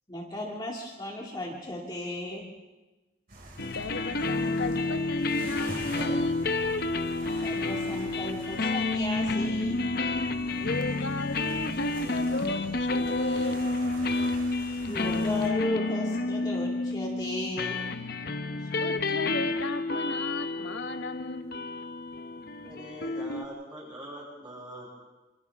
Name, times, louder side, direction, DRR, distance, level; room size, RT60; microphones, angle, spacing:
voice 1, 0.1-2.5 7.4-9.8 14.8-17.8, left 1 dB, 20° left, -3 dB, 2.3 m, -35 dB
sound 1, 3.3-15.5, right 1 dB, 50° right, 5.6 m, -45 dB
sound 2, 3.6-23.5, left 3 dB, 50° left, 0.9 m, -30 dB
voice 2, 3.7-6.5 10.6-13.7 18.8-21.6, left 2 dB, 70° left, 7 dB, 1.4 m, -35 dB
voice 3, 22.6-24.9, equal, 25° right, -8 dB, 7.8 m, -43 dB
27.5 x 26.0 x 3.6 m, 1.2 s
head